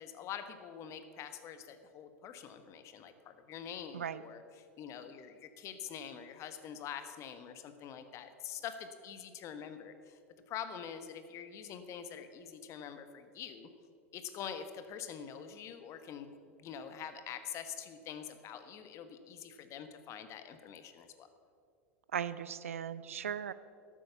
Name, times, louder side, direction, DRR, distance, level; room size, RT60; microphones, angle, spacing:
voice 1, 0.0-10.2 10.5-13.7 14.1-21.3, left 8 dB, 40° left, 9 dB, 1.2 m, -45 dB
voice 2, 22.1-23.5, right 8 dB, 80° right, 15 dB, 0.5 m, -37 dB
12.5 x 8.7 x 6.9 m, 2.4 s
hypercardioid pair, 90°, 7 cm